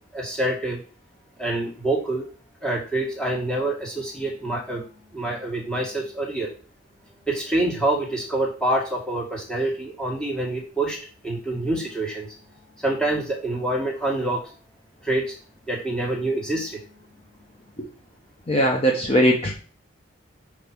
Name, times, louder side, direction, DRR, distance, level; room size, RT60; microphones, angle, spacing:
voice 1, 0.1-0.8 1.4-2.3 2.6-4.8 5.1-6.5 7.3-11.0 11.2-12.3 12.8-14.4 15.0-15.3 15.7-16.8, right 2 dB, 5° left, -3 dB, 1.9 m, -26 dB
voice 2, 18.5-19.5, equal, 30° left, 0 dB, 1.0 m, -20 dB
5.3 x 5.0 x 6.1 m, 0.39 s
head